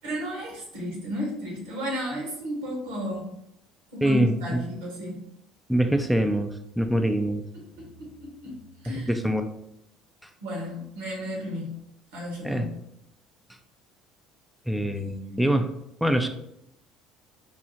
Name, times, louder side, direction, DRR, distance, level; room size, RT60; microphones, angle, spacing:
voice 1, 0.0-3.3 3.9-5.2 7.5-8.6 8.8-9.2 10.4-11.7 12.1-12.8 15.0-15.5, equal, 80° right, -2 dB, 1.2 m, -34 dB
voice 2, 4.0-4.6 5.7-7.4 8.9-9.5 12.4-12.7 14.7-15.7 16.0-16.3, right 1 dB, ahead, 6 dB, 0.3 m, -24 dB
3.6 x 2.0 x 2.7 m, 0.78 s
hypercardioid pair, 70°, 0 cm